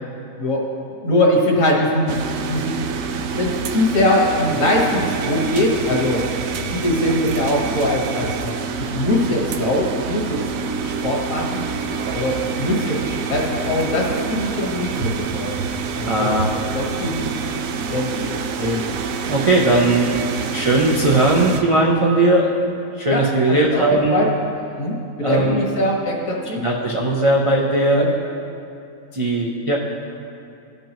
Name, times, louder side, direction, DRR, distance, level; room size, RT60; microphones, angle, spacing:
voice 1, 1.0-2.2 2.5-2.8 3.3-6.2 6.7-8.5 8.8-10.4 10.8-11.6 12.1-15.6 15.9-16.3 16.7-17.3 17.9-18.8 20.1-20.2 23.0-23.2 23.5-23.8 24.1-24.3 24.8-26.6 27.9-28.1, left 1 dB, 65° left, -2 dB, 1.8 m, -21 dB
sound 1, 2.1-21.6, right 5 dB, 70° right, 0.9 m, -27 dB
voice 2, 16.0-16.5 19.3-20.2 20.5-22.7 23.0-24.2 25.2-25.6 26.6-28.0 29.1-29.8, right 2 dB, 50° right, -2 dB, 0.3 m, -18 dB
15.5 x 5.3 x 3.0 m, 2.6 s
omnidirectional pair, 1.5 m